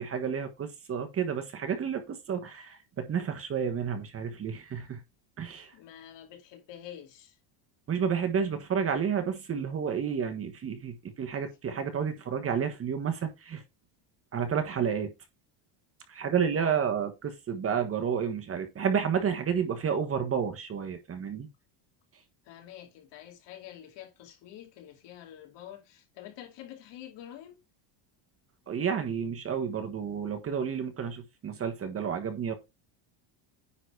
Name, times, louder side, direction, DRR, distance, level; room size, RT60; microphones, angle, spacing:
voice 1, 0.0-5.0 5.4-5.7 7.9-13.6 14.3-15.1 16.1-21.5 28.7-32.5, right 7 dB, 30° right, 1.3 m, -30 dB
voice 2, 5.7-7.4 16.5-16.8 22.4-27.6, left 11 dB, 60° left, 2.6 m, -47 dB
9.9 x 4.0 x 4.7 m
cardioid pair, 145°, 49 cm